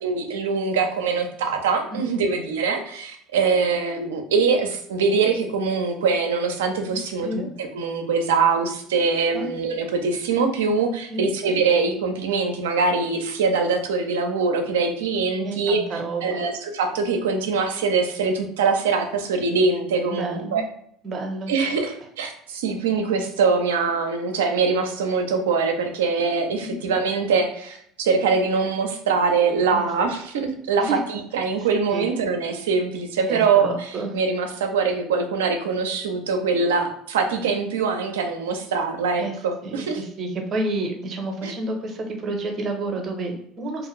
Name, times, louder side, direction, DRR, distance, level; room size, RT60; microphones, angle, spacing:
voice 1, 0.0-7.3 7.6-20.6 21.5-40.0 41.4-41.5, right 4 dB, 85° right, 5 dB, 0.4 m, -23 dB
voice 2, 1.9-2.2 6.9-7.5 9.3-9.5 11.1-11.3 15.4-16.4 20.1-20.6 21.0-21.5 26.6-26.9 29.7-29.9 30.8-31.0 31.6-32.1 33.3-34.1 39.2-39.4 39.6-43.9, right 2 dB, 40° right, 3 dB, 0.7 m, -30 dB
2.4 x 2.4 x 3.0 m, 0.67 s
hypercardioid pair, 80°, 0 cm